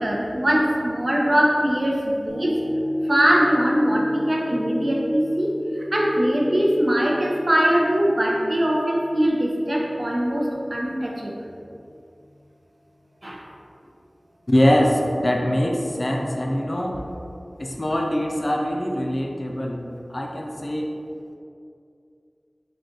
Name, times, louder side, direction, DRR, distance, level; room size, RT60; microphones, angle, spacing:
voice 1, 0.0-2.6 3.0-11.5 13.2-13.4, equal, 45° right, -2 dB, 0.6 m, -22 dB
sound 1, 2.3-10.7 11.2-11.3, left 1 dB, 70° right, 1.3 m, -31 dB
voice 2, 14.5-17.0 17.6-19.8 20.1-20.9, equal, 45° left, 0 dB, 0.4 m, -23 dB
3.9 x 2.3 x 3.7 m, 2.4 s
wide cardioid pair, 55°, 0 cm